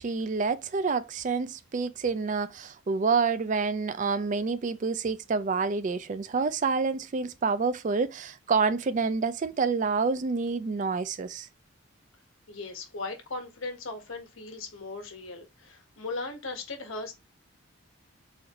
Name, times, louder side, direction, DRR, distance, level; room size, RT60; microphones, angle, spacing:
voice 1, 0.0-11.5, right 4 dB, 35° right, 0.3 m, -28 dB
voice 2, 12.5-17.1, left 3 dB, 80° left, 1.2 m, -38 dB
4.1 x 2.6 x 2.9 m
head